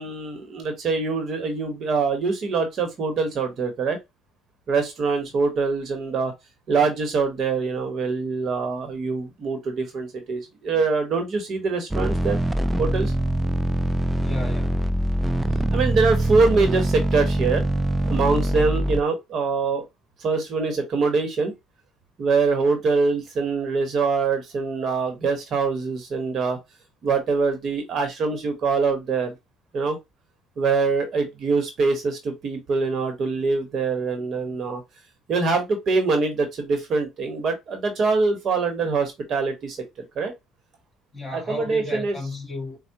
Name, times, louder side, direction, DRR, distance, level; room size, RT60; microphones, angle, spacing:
voice 1, 0.0-4.0 4.7-6.3 6.7-12.4 12.8-13.1 15.7-17.7 18.0-19.9 20.2-21.5 22.2-26.6 27.0-29.3 29.7-30.0 30.6-34.8 35.3-40.3 41.3-42.2, right 4 dB, 50° right, 1.0 m, -24 dB
sound 1, 11.9-19.0, right 1 dB, 10° right, 0.3 m, -23 dB
voice 2, 14.1-15.0 41.1-42.8, left 2 dB, 10° left, 1.4 m, -34 dB
4.4 x 2.1 x 2.8 m
cardioid pair, 110°, 0 cm